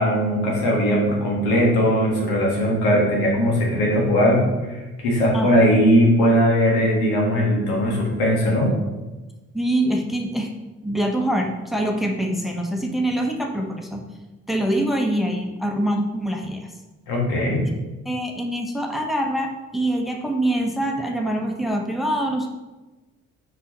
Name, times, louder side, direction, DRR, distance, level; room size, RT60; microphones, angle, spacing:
voice 1, 0.0-8.8 17.1-17.6, equal, 70° left, -1 dB, 2.0 m, -19 dB
voice 2, 9.5-10.5 10.8-14.0 14.5-16.7 18.0-22.5, right 1 dB, ahead, 2 dB, 1.2 m, -24 dB
6.1 x 5.4 x 5.4 m, 1.1 s
figure-of-eight pair, 40°, 41 cm